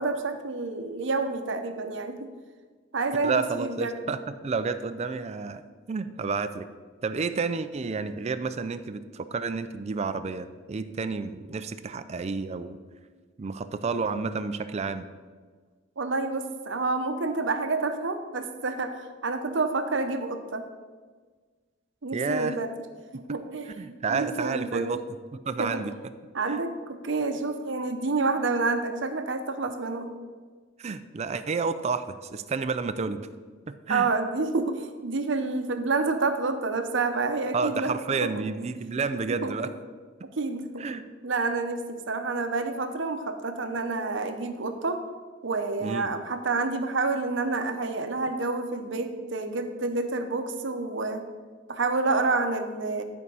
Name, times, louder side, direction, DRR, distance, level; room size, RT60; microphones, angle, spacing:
voice 1, 0.0-2.3 2.9-3.9 16.0-20.7 22.0-22.7 23.1-24.9 25.6-25.8 26.3-30.2 33.9-37.9 38.2-38.3 39.4-39.5 40.4-40.8 41.2-45.0 45.4-51.2 51.7-53.0, right 3 dB, 70° right, 7 dB, 0.8 m, -28 dB
voice 2, 3.2-5.6 5.9-6.7 7.0-12.8 13.4-15.1 22.1-22.5 23.8-25.0 25.3-25.9 26.5-26.6 30.8-33.3 33.7-34.1 37.5-39.7 40.2-40.3 40.8-41.0 45.8-46.1, right 4 dB, 35° right, 10 dB, 0.4 m, -30 dB
11.0 x 4.7 x 5.5 m, 1.5 s
head